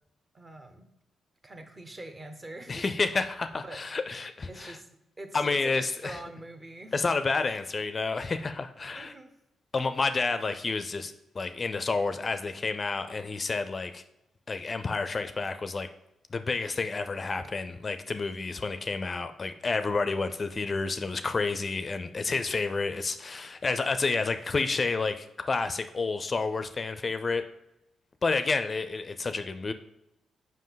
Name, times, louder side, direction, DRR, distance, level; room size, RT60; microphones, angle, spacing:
voice 1, 0.3-0.8 1.4-2.9 3.5-3.8 4.4-4.9 5.2-6.9 8.9-9.3, right 1 dB, 30° right, 6 dB, 0.9 m, -44 dB
voice 2, 2.7-4.7 5.3-6.2 6.9-9.1 9.7-14.0 14.5-15.9 16.3-27.4 28.2-29.7, left 4 dB, 35° left, 10 dB, 0.4 m, -30 dB
5.3 x 5.2 x 3.9 m, 0.88 s
cardioid pair, 90°, 0 cm